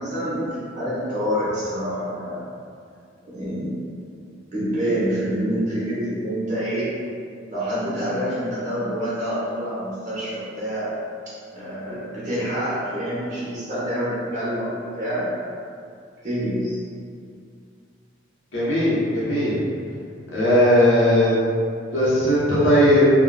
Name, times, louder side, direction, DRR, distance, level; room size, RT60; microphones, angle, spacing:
voice 1, 0.0-2.4 3.3-3.7 4.5-6.9 7.5-10.9 11.3-15.3 16.2-16.8, equal, 40° right, -10 dB, 1.0 m, -27 dB
voice 2, 18.5-19.6 20.3-21.4 21.9-23.1, left 1 dB, 85° left, -8 dB, 0.9 m, -18 dB
3.6 x 2.2 x 2.3 m, 2.3 s
head